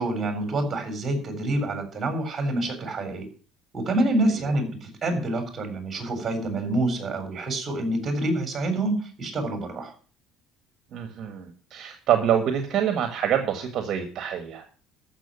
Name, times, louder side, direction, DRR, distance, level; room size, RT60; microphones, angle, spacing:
voice 1, 0.0-3.3 3.7-9.9, right 1 dB, 20° right, 6 dB, 3.8 m, -27 dB
voice 2, 10.9-14.8, right 9 dB, 45° right, 7 dB, 1.6 m, -26 dB
14.0 x 6.3 x 6.9 m, 0.41 s
cardioid pair, 155°, 0 cm